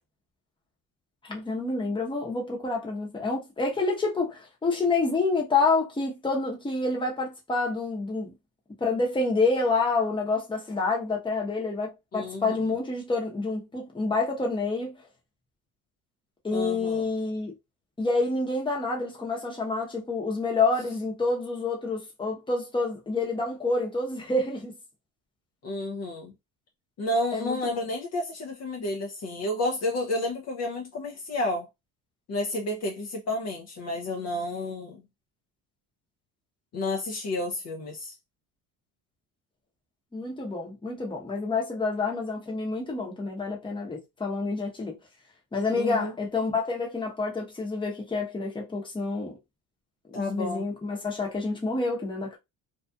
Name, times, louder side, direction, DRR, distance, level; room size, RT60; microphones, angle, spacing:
voice 1, 1.2-8.3 8.8-15.0 16.4-17.5 18.0-24.7 27.3-27.7 40.1-45.0 45.5-49.4 50.1-52.4, left 3 dB, 15° left, 0.9 m, -28 dB
voice 2, 12.1-12.6 16.5-17.1 25.6-26.3 27.0-31.7 32.3-35.0 36.7-38.1 45.7-46.1 50.1-50.7, left 1 dB, 45° left, 0.6 m, -31 dB
2.6 x 2.3 x 2.3 m
cardioid pair, 100°, 37 cm